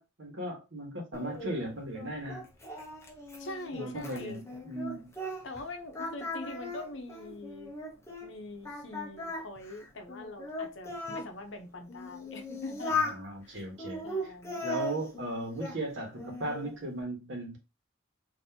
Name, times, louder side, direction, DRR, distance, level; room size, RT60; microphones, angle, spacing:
voice 1, 0.0-2.5 3.7-5.1 13.0-14.0 14.6-17.6, right 1 dB, 65° right, 1.3 m, -37 dB
Singing, 1.1-5.6 5.9-8.3 8.7-11.3 11.9-13.2 13.8-15.8 16.2-16.8, left 2 dB, 15° left, 0.7 m, -38 dB
voice 2, 3.4-4.4 5.4-7.7 8.2-13.1 13.4-13.6 14.0-14.6, left 2 dB, 65° left, 0.8 m, -43 dB
3.9 x 2.7 x 2.7 m
head